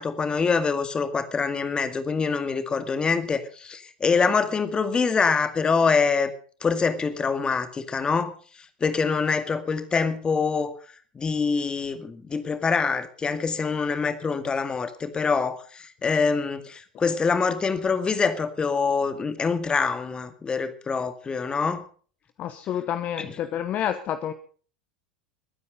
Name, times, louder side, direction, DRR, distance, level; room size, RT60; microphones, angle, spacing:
voice 1, 0.0-6.3 6.6-8.3 8.8-10.8 11.2-21.9 23.2-23.3, left 5 dB, 20° left, 10 dB, 2.0 m, -25 dB
voice 2, 22.4-24.3, left 10 dB, 35° left, 10 dB, 1.1 m, -29 dB
21.5 x 9.7 x 5.3 m, 0.42 s
figure-of-eight pair, 80°, 5 cm